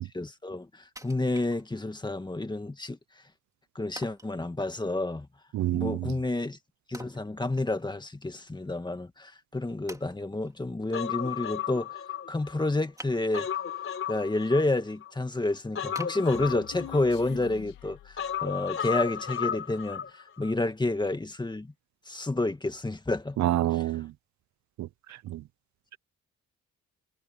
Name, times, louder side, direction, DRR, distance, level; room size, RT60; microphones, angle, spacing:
voice 1, 0.1-3.0 3.8-5.3 5.7-6.6 6.9-11.9 12.3-13.5 14.1-21.7 22.1-23.4 23.7-23.8, left 2 dB, 15° left, 2.1 m, -30 dB
Wood, 1.0-2.1 2.5-2.6 4.0-4.4 6.9-8.1 8.4-8.5 9.2-9.3 9.9-10.6 12.9-13.7 14.2-14.6 15.1-15.2 16.0-17.0 17.4-17.5, right 1 dB, 10° right, 2.6 m, -47 dB
voice 2, 5.5-6.1 23.4-24.1 24.8-24.9 25.3-25.4, right 14 dB, 70° right, 0.7 m, -27 dB
Human voice, 10.9-12.7 13.1-15.1 15.8-17.5 18.2-20.1 20.4-20.5, left 9 dB, 45° left, 3.6 m, -34 dB
Human voice 2, 15.6-18.6, left 13 dB, 85° left, 2.3 m, -46 dB
cardioid pair, 90°, 30 cm